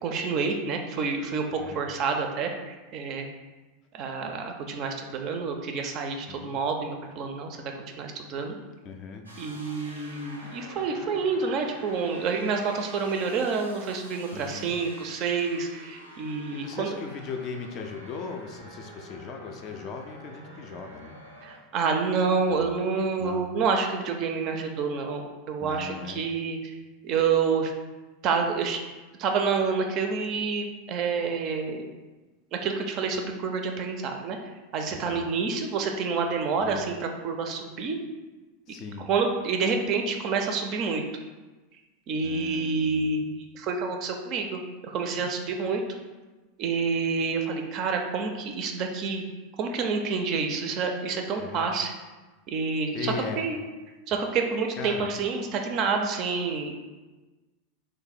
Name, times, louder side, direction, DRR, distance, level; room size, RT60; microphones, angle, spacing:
voice 1, 0.0-3.3 3.9-8.5 9.3-17.0 21.4-25.2 25.5-26.8 27.0-27.7 28.2-28.8 29.2-31.9 32.5-34.4 34.7-38.0 39.1-41.0 42.1-45.8 46.6-49.2 49.6-51.9 52.5-53.6 54.1-56.7, right 5 dB, 40° right, 4 dB, 0.4 m, -28 dB
voice 2, 8.8-9.3 14.3-14.7 16.5-21.1 22.5-22.7 23.2-23.5 25.6-26.2 35.0-35.3 36.6-36.8 38.7-39.1 42.2-43.1 51.4-51.7 52.9-53.5 54.8-55.1, left 5 dB, 40° left, 4 dB, 0.4 m, -38 dB
sound 1, 9.3-21.6, right 1 dB, 90° right, 0.6 m, -47 dB
3.1 x 2.1 x 4.1 m, 1.2 s
figure-of-eight pair, 85°, 0 cm